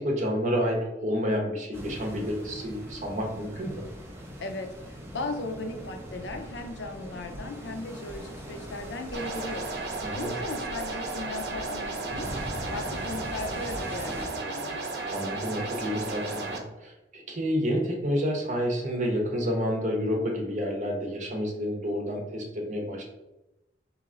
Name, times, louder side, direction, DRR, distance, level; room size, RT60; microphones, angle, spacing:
voice 1, 0.0-3.8 10.0-10.3 15.1-23.0, equal, 45° right, 0 dB, 0.9 m, -29 dB
sound 1, 1.7-14.3, equal, 15° right, 0.6 m, -41 dB
voice 2, 4.4-9.7 10.1-12.3 12.7-14.8, left 2 dB, 80° left, 6 dB, 0.5 m, -37 dB
sound 2, 9.1-16.6, right 3 dB, 70° right, 0.6 m, -34 dB
3.8 x 2.9 x 3.7 m, 0.96 s
head